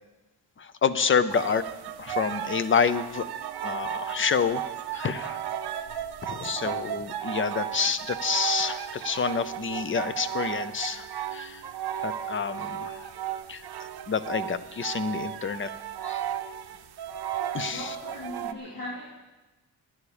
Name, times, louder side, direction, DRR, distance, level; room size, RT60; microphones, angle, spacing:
voice 1, 0.6-1.6 2.0-3.3 3.6-5.4 6.2-11.0 11.3-11.6 12.0-13.0 13.5-13.6 14.1-15.7 16.0-16.2 17.5-17.9, left 6 dB, 30° left, 14 dB, 0.5 m, -28 dB
sound 1, 1.3-18.5, right 10 dB, 65° right, 0.8 m, -34 dB
voice 2, 17.7-19.1, left 1 dB, 50° left, -8 dB, 3.6 m, -38 dB
19.0 x 9.8 x 4.9 m, 1.1 s
wide cardioid pair, 175°, 42 cm